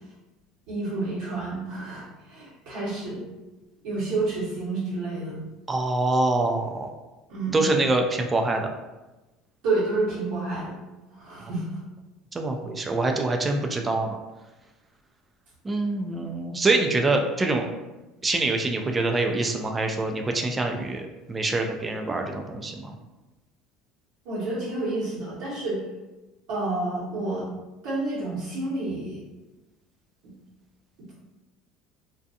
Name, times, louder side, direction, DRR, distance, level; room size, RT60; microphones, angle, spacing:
voice 1, 0.7-3.2 3.8-5.4 7.3-7.6 9.6-10.8 11.1-11.8 24.2-25.8 26.5-27.5 27.8-29.2, right 2 dB, 75° right, -9 dB, 1.1 m, -29 dB
voice 2, 5.7-6.9 7.5-8.7 12.3-14.2 15.6-17.7 18.2-23.0, right 2 dB, 20° right, 3 dB, 0.3 m, -25 dB
2.5 x 2.2 x 2.6 m, 1.1 s
supercardioid pair, 105°, 0 cm